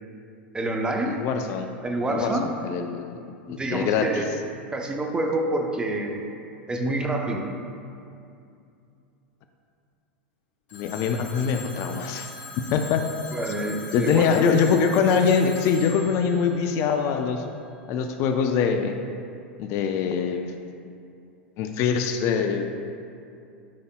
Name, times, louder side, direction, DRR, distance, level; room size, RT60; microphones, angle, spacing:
voice 1, 0.5-1.2 1.8-2.5 3.5-4.2 4.7-6.2 6.7-7.5 13.3-14.4, right 2 dB, 15° right, 2 dB, 0.9 m, -27 dB
voice 2, 1.1-1.7 2.1-3.1 3.5-4.2 10.7-12.3 12.7-13.0 13.9-17.4 17.9-18.9 19.6-20.5 21.6-22.7, left 6 dB, 45° left, 6 dB, 0.5 m, -23 dB
Telephone, 10.7-17.5, left 4 dB, 60° left, 1.3 m, -42 dB
12.0 x 5.5 x 2.3 m, 2.5 s
hypercardioid pair, 90°, 6 cm